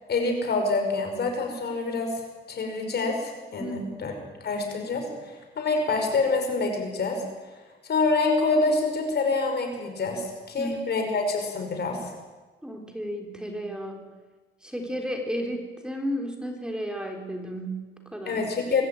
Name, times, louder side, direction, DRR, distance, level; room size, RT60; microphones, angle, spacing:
voice 1, 0.1-2.2 2.5-4.1 4.4-7.2 7.8-12.1 18.3-18.8, left 3 dB, 55° left, 4 dB, 5.5 m, -26 dB
voice 2, 3.6-4.1 10.6-10.9 12.6-14.1 14.6-18.5, equal, 5° right, 2 dB, 3.8 m, -33 dB
24.5 x 14.0 x 9.1 m, 1.3 s
cardioid pair, 90°, 20 cm